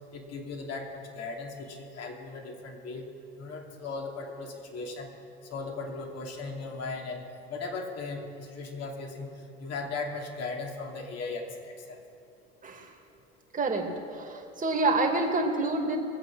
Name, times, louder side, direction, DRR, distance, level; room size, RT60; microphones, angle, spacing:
voice 1, 0.1-3.0 3.4-5.1 5.5-9.3 9.6-12.0, left 3 dB, 50° left, 1 dB, 2.8 m, -37 dB
voice 2, 13.5-13.9 14.1-16.0, right 3 dB, 25° right, 2 dB, 2.5 m, -27 dB
22.0 x 8.0 x 6.3 m, 2.6 s
hypercardioid pair, 75°, 32 cm